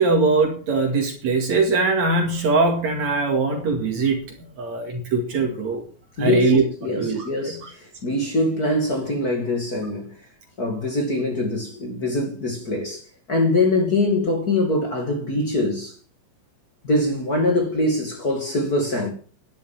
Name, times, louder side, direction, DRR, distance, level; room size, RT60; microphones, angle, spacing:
voice 1, 0.0-4.2 4.6-5.8 6.2-6.6 7.0-7.6, right 3 dB, 70° right, 3.5 m, -21 dB
voice 2, 6.2-6.5 6.8-10.2 10.6-15.9 16.8-19.1, left 2 dB, 35° left, 2.5 m, -23 dB
11.5 x 10.5 x 7.2 m
omnidirectional pair, 3.3 m